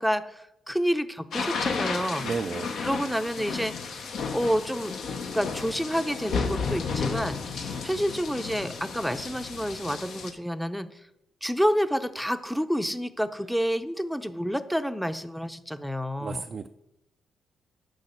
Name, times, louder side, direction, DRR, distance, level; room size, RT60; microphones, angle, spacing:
voice 1, 0.0-2.2 2.8-5.0 5.3-10.9 11.4-16.4, equal, ahead, 11 dB, 0.6 m, -29 dB
sound 1, 1.3-10.3, left 5 dB, 70° left, 0.9 m, -33 dB
voice 2, 2.2-2.7 16.2-16.7, right 5 dB, 50° right, 6 dB, 0.4 m, -32 dB
6.4 x 5.4 x 6.6 m, 0.87 s
supercardioid pair, 65°, 0 cm